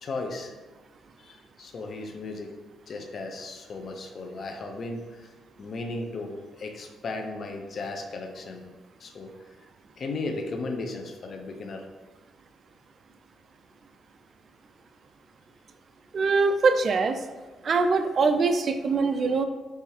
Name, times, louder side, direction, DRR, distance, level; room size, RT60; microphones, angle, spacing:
voice 1, 0.0-0.5 1.2-2.5 2.9-5.3 5.6-8.7 9.0-9.3 10.0-11.8, left 3 dB, 50° left, 3 dB, 0.7 m, -35 dB
voice 2, 16.1-17.2 17.6-19.4, right 4 dB, 50° right, 8 dB, 0.4 m, -23 dB
4.8 x 3.4 x 2.8 m, 1.3 s
cardioid pair, 90°, 0 cm